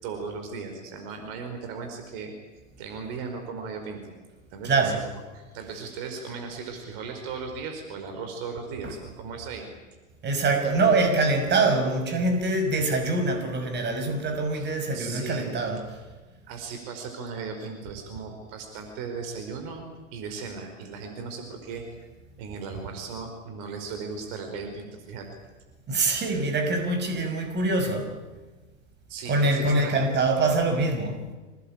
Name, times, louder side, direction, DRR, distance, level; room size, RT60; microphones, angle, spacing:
voice 1, 0.0-2.3 2.8-4.1 4.5-5.0 5.3-9.7 14.5-15.6 16.5-19.9 20.1-22.1 22.4-25.3 29.1-30.1, right 5 dB, 50° right, 4.8 m, -37 dB
voice 2, 4.6-5.0 8.8-8.9 10.2-15.8 25.9-28.1 29.3-31.2, right 3 dB, 25° right, 6.0 m, -24 dB
26.5 x 19.5 x 8.9 m
hypercardioid pair, 105°, 39 cm